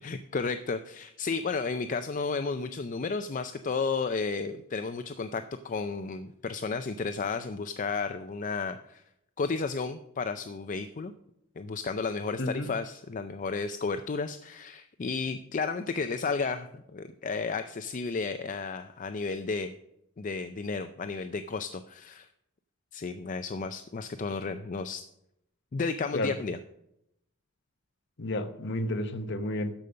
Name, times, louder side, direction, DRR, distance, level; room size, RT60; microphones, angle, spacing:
voice 1, 0.0-9.0 9.4-11.1 11.6-19.7 20.2-22.3 22.9-25.0 25.7-26.6, left 4 dB, 35° left, 9 dB, 0.4 m, -33 dB
voice 2, 12.4-12.7 26.1-26.4 28.2-29.7, left 1 dB, 55° left, 8 dB, 0.9 m, -31 dB
13.0 x 5.2 x 6.7 m, 0.81 s
head